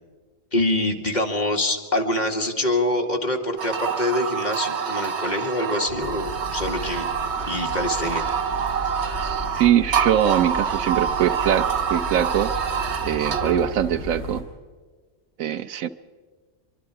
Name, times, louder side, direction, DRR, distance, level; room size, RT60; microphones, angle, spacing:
voice 1, 0.5-7.1 7.5-8.2, left 1 dB, 35° left, 2 dB, 2.0 m, -25 dB
sound 1, 3.6-13.7, right 7 dB, 60° right, 1.2 m, -27 dB
sound 2, 5.9-14.4, left 1 dB, 50° left, 5.2 m, -35 dB
voice 2, 9.2-12.5 13.0-14.4 15.4-15.9, right 10 dB, 85° right, 13 dB, 1.2 m, -22 dB
24.0 x 23.5 x 4.8 m, 1.5 s
omnidirectional pair, 1.4 m